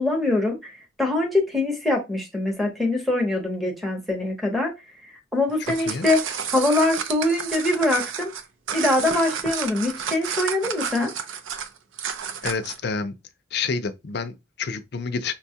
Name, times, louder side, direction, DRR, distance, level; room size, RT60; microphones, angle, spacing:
voice 1, 0.0-4.7 5.0-8.3 8.7-11.1, left 2 dB, ahead, 0.7 m, -23 dB
sound 1, 5.5-12.8, right 7 dB, 75° right, 0.5 m, -31 dB
voice 2, 12.4-13.1 13.5-15.3, left 5 dB, 55° left, 0.4 m, -28 dB
5.4 x 2.2 x 2.7 m
head